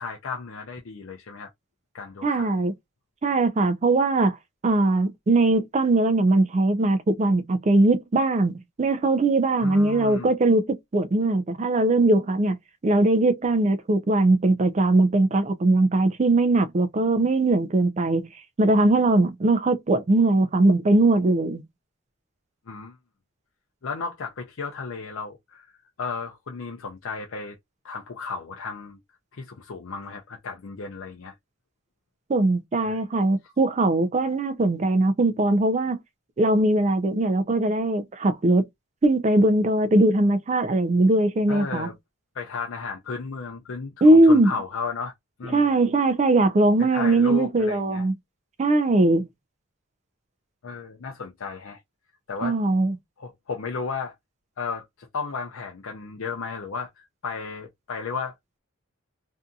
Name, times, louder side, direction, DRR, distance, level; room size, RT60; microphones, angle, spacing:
voice 1, 0.0-1.5 1.9-2.6 9.6-10.3 22.7-23.0 23.8-25.7 26.0-27.6 27.8-29.0 29.3-31.3 32.8-33.0 33.4-33.5 41.5-41.9 42.3-45.1 45.4-45.8 46.8-48.1 50.6-51.8 52.3-52.6 53.2-54.2 54.6-58.3, left 4 dB, 75° left, 0.5 m, -34 dB
voice 2, 2.2-2.7 3.2-4.4 4.6-10.7 10.9-12.6 12.8-18.3 18.6-21.6 32.3-36.0 36.4-38.6 39.0-41.9 44.0-44.5 45.5-48.1 48.6-49.3 52.4-52.9, right 2 dB, 30° right, 0.4 m, -20 dB
2.7 x 2.5 x 2.3 m
head